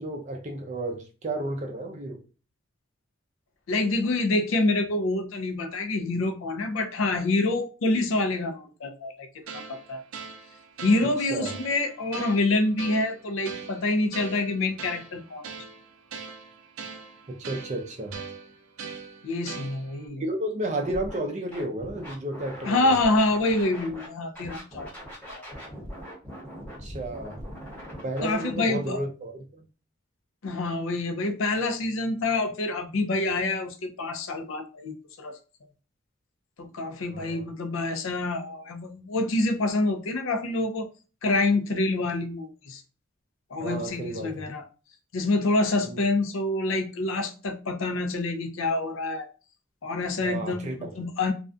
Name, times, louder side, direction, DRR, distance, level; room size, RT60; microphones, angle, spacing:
voice 1, 0.0-2.2 11.2-11.5 17.3-18.2 20.2-23.0 26.8-27.4 28.0-29.4 37.1-37.5 43.6-44.4 45.8-46.0 50.2-50.9, right 1 dB, 35° right, 0.4 m, -32 dB
voice 2, 3.7-9.3 9.5-10.0 10.8-15.4 19.2-20.2 22.6-24.9 25.3-25.5 28.2-29.0 30.4-35.4 36.6-40.9 41.2-42.8 43.5-44.6 45.1-49.3 49.8-51.3, left 2 dB, 70° left, 0.5 m, -27 dB
sound 1, 9.5-20.1, right 5 dB, 90° right, 0.5 m, -41 dB
Scratching (performance technique), 20.8-21.2 21.5-24.1 24.3-28.5, equal, 10° left, 0.8 m, -41 dB
2.4 x 2.2 x 2.5 m
head